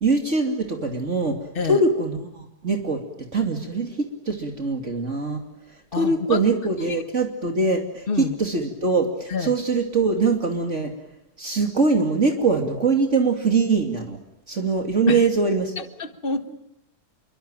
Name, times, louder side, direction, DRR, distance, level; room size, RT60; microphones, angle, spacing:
voice 1, 0.0-1.4 1.7-3.0 3.3-5.4 6.0-10.9 11.4-14.2 14.5-15.7, right 3 dB, 50° right, 4 dB, 3.0 m, -22 dB
voice 2, 5.9-6.4 6.8-7.0 8.1-8.3 9.3-9.5 15.1-15.3 15.8-16.6, left 4 dB, 35° left, 10 dB, 1.6 m, -27 dB
28.0 x 23.5 x 8.9 m, 0.84 s
omnidirectional pair, 1.7 m